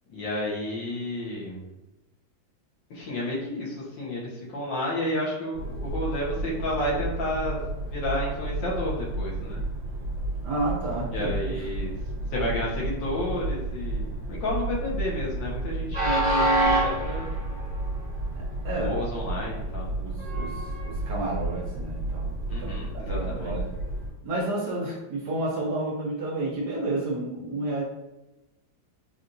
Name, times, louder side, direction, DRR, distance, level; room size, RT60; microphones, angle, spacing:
voice 1, 0.1-1.7 2.9-9.6 11.1-11.9 12.3-17.3 18.8-19.9 22.5-23.6, left 1 dB, 70° left, -4 dB, 1.5 m, -31 dB
Train, 5.5-24.1, right 1 dB, 35° right, 1.7 m, -30 dB
voice 2, 10.4-11.6 18.3-18.9 20.0-22.3 22.6-22.7 23.1-23.7 24.2-27.8, right 2 dB, 65° right, -3 dB, 1.2 m, -31 dB
4.3 x 2.4 x 2.6 m, 1.0 s
omnidirectional pair, 2.1 m